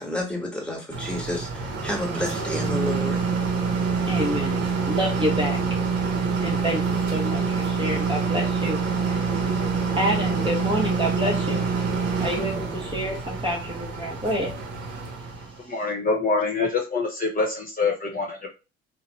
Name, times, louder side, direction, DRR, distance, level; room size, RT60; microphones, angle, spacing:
voice 1, 0.0-3.2, left 1 dB, 5° left, 0 dB, 1.4 m, -30 dB
sound 1, 0.9-15.6, right 5 dB, 50° right, 0.9 m, -26 dB
voice 2, 4.1-5.6 6.4-8.8 9.1-14.5, equal, 15° right, -1 dB, 0.9 m, -28 dB
voice 3, 15.7-18.5, left 4 dB, 25° left, 0 dB, 1.0 m, -25 dB
2.8 x 2.1 x 3.0 m, 0.29 s
hypercardioid pair, 60°, 32 cm